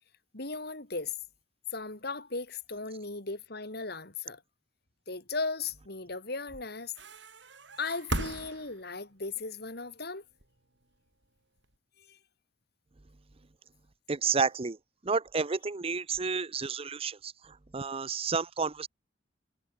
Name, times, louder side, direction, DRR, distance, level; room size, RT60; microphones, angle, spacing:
voice 1, 0.3-1.1 1.7-4.4 5.1-6.9 7.8-10.2 12.1-12.2, left 3 dB, 60° left, 3.9 m, -37 dB
sound 1, 6.9-9.1 10.3-11.8, right 2 dB, 90° right, 7.1 m, -38 dB
voice 2, 14.1-14.8 15.0-18.9, right 5 dB, 30° right, 0.7 m, -31 dB
head